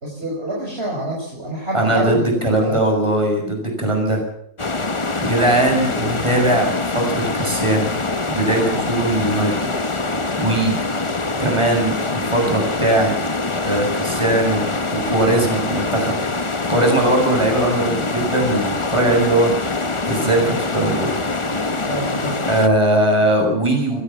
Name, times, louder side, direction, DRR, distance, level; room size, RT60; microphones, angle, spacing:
voice 1, 0.0-2.3 2.6-2.8 17.0-17.1 21.8-22.4, right 1 dB, 40° right, -2 dB, 5.4 m, -26 dB
voice 2, 1.7-4.2 5.2-7.9 8.3-9.7 10.4-10.8 11.4-13.1 13.6-16.2 16.7-19.5 20.0-21.1 22.5-24.0, right 1 dB, 20° right, 1 dB, 7.7 m, -19 dB
sound 1, 4.6-22.7, left 3 dB, 20° left, 1.1 m, -24 dB
23.5 x 16.5 x 7.3 m, 0.69 s
omnidirectional pair, 1.6 m